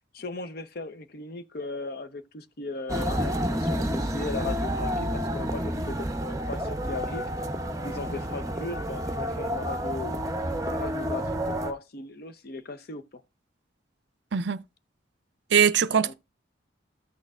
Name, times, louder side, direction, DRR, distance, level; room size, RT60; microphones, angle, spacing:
voice 1, 0.1-7.3 7.8-10.2 10.6-13.0 15.9-16.1, left 3 dB, 50° left, 0.7 m, -37 dB
sound 1, 2.9-11.7, equal, 15° right, 0.7 m, -29 dB
voice 2, 15.5-16.1, right 7 dB, 60° right, 0.4 m, -21 dB
14.0 x 6.5 x 2.4 m
head